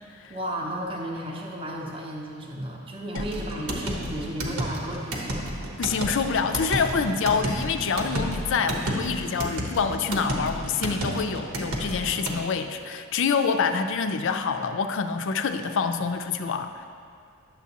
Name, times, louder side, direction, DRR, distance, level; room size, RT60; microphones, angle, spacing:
voice 1, 0.3-5.6, right 1 dB, 25° right, -2 dB, 0.7 m, -34 dB
sound 1, 3.1-12.4, right 1 dB, 80° right, 1.1 m, -31 dB
voice 2, 5.8-16.9, left 5 dB, 60° left, 8 dB, 0.4 m, -26 dB
10.5 x 7.2 x 2.9 m, 2.2 s
head